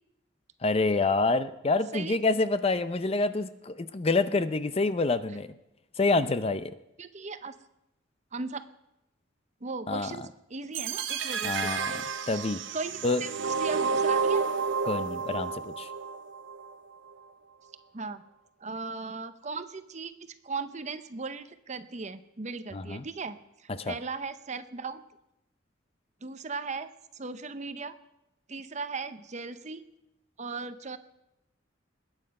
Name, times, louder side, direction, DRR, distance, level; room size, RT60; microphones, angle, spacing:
voice 1, 0.6-5.5 6.0-6.7 9.9-10.3 11.4-12.0 12.3-12.6 13.0-13.2 14.8-15.9 22.7-23.0 23.8-24.0, left 3 dB, 30° left, 13 dB, 0.5 m, -27 dB
voice 2, 7.0-7.5 8.3-8.6 9.6-11.8 12.2-12.3 12.7-14.4 17.9-18.2 18.6-23.4 23.6-25.0 26.2-26.9 27.1-28.0 28.5-29.8 30.4-31.0, right 4 dB, 35° right, 11 dB, 0.8 m, -37 dB
sound 1, 10.7-16.8, right 5 dB, 70° right, 0.9 m, -30 dB
20.5 x 8.9 x 5.4 m, 0.88 s
head